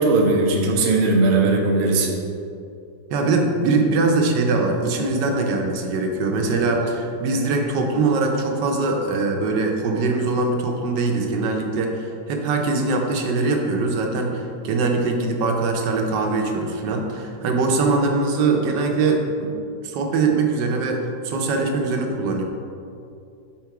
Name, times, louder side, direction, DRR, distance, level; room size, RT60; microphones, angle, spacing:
voice 1, 0.0-2.1 6.4-6.5, right 3 dB, 55° right, 0 dB, 0.8 m, -18 dB
voice 2, 3.1-19.5 19.8-22.4, right 3 dB, 85° right, 2 dB, 1.4 m, -22 dB
5.8 x 3.7 x 4.7 m, 2.6 s
omnidirectional pair, 1.9 m